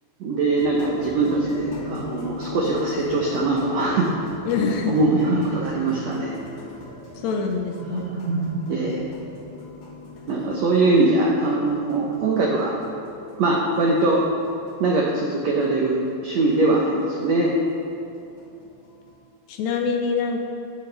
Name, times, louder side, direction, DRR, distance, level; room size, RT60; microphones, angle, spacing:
voice 1, 0.2-4.2 4.9-6.3 7.9-9.0 10.3-12.8 13.4-14.2 14.8-17.6, right 2 dB, 70° right, -2 dB, 1.7 m, -22 dB
sound 1, 0.6-19.2, left 2 dB, 50° left, 1.7 m, -40 dB
voice 2, 4.4-4.9 7.1-8.1 19.5-20.4, left 5 dB, 85° left, 2 dB, 1.5 m, -24 dB
16.5 x 11.0 x 3.4 m, 2.6 s
omnidirectional pair, 4.4 m